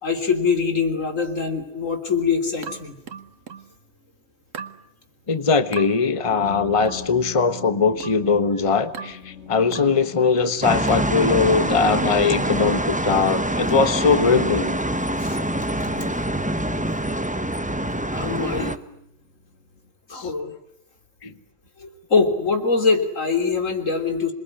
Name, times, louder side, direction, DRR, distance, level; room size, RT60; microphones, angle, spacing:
voice 1, 0.0-3.0 15.1-16.1 18.1-18.8 20.1-20.5 21.8-24.3, left 4 dB, 85° left, 6 dB, 3.7 m, -23 dB
sound 1, 2.6-3.7 4.5-4.8 5.7-5.9 6.9-7.1 8.0-8.3 8.9-9.2 9.7-10.0 10.9-11.2, right 6 dB, 85° right, 1.7 m, -37 dB
sound 2, 3.0-19.9, left 6 dB, 65° left, 3.1 m, -45 dB
voice 2, 5.3-14.7 20.1-20.3 21.2-21.3, left 5 dB, 25° left, 11 dB, 1.2 m, -20 dB
sound 3, 10.6-18.8, right 1 dB, 5° right, 0.9 m, -25 dB
27.0 x 22.0 x 9.8 m, 0.74 s
omnidirectional pair, 1.3 m